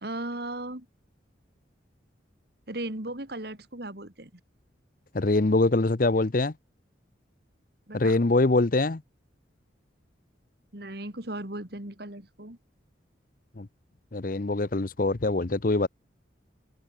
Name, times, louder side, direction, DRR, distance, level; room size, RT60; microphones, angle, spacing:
voice 1, 0.0-0.9 2.7-4.4 7.9-8.2 10.7-12.6, right 1 dB, 55° right, 3.0 m, -37 dB
voice 2, 5.1-6.5 7.9-9.0 13.6-13.7 14.1-15.9, left 2 dB, 45° left, 0.7 m, -23 dB
open air
head